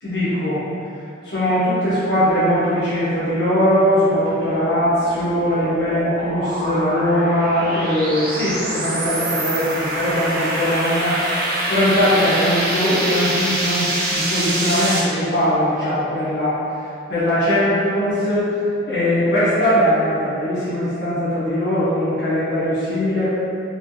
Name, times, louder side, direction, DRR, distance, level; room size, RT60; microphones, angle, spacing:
voice 1, 0.0-0.6 1.2-16.5 16.8-18.5 18.9-23.3, equal, 60° left, -12 dB, 0.9 m, -20 dB
sound 1, 4.7-15.0, right 1 dB, 50° right, 0.6 m, -25 dB
4.1 x 3.0 x 2.3 m, 2.6 s
head